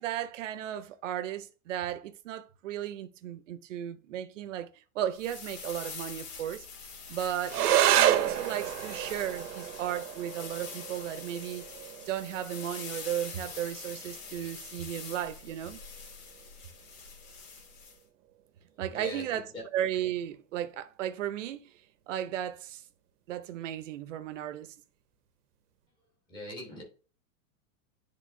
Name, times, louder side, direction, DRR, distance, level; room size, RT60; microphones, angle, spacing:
voice 1, 0.0-4.7 4.9-6.7 7.1-11.7 12.1-15.8 18.8-19.4 19.7-21.7 22.1-22.8 23.3-24.7, right 11 dB, 55° right, 0.7 m, -35 dB
sound 1, 5.1-18.0, left 5 dB, 65° left, 2.4 m, -45 dB
sound 2, 7.5-16.5, right 11 dB, 90° right, 0.8 m, -31 dB
voice 2, 18.9-19.6 26.3-26.8, left 1 dB, 10° left, 1.2 m, -41 dB
10.0 x 3.5 x 2.6 m
supercardioid pair, 180°, 45 cm